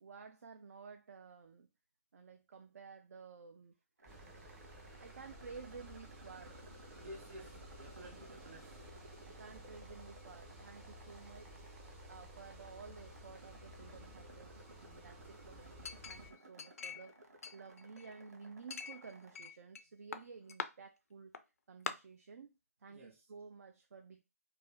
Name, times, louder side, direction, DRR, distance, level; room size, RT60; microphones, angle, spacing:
voice 1, 0.0-1.7 2.1-3.7 5.0-6.6 9.3-11.7 12.1-17.2 17.5-21.4 21.7-22.5 22.8-24.2, right 5 dB, 65° right, 0.4 m, -53 dB
sound 1, 4.0-19.4, right 1 dB, 85° right, 0.8 m, -59 dB
sound 2, 4.1-16.3, right 1 dB, 15° right, 0.5 m, -55 dB
voice 2, 7.0-8.8 22.9-23.3, equal, 50° right, 1.1 m, -53 dB
Chink clink, 15.8-17.1 17.4-18.2 18.7-19.8 20.1-20.7 21.3-21.4 21.9-22.0, left 6 dB, 60° left, 0.3 m, -44 dB
2.5 x 2.3 x 3.3 m
figure-of-eight pair, 150°, 9 cm